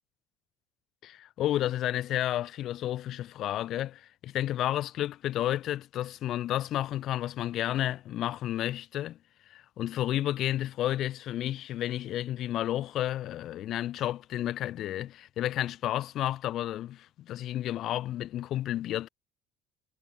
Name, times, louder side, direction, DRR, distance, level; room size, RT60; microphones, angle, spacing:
voice 1, 1.0-9.2 9.5-19.1, left 13 dB, 60° left, 2.4 m, -31 dB
supercardioid pair, 90°, 0 cm